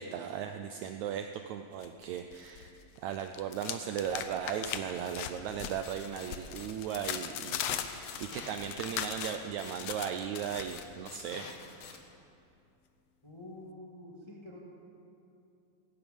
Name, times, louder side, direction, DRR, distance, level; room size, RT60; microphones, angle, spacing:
voice 1, 0.0-7.6 7.9-11.5, right 8 dB, 80° right, 7 dB, 1.7 m, -37 dB
sound 1, 1.8-2.7 3.0-10.8, left 9 dB, 80° left, 1.4 m, -39 dB
sound 2, 5.8-12.0, left 5 dB, 60° left, 1.6 m, -50 dB
voice 2, 13.2-14.7, left 1 dB, 15° left, -2 dB, 1.2 m, -48 dB
17.0 x 16.0 x 5.2 m, 2.6 s
omnidirectional pair, 3.8 m